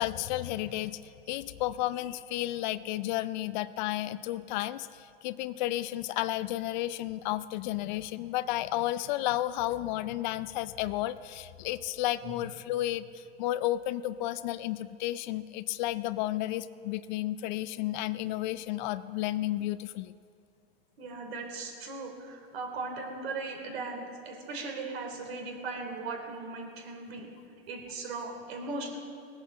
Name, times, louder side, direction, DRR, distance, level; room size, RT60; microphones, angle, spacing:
voice 1, 0.0-20.2, left 15 dB, 45° left, 15 dB, 0.5 m, -32 dB
voice 2, 21.0-27.3 27.7-29.0, right 3 dB, 70° right, 3 dB, 3.7 m, -38 dB
19.0 x 9.0 x 7.5 m, 2.5 s
supercardioid pair, 140°, 32 cm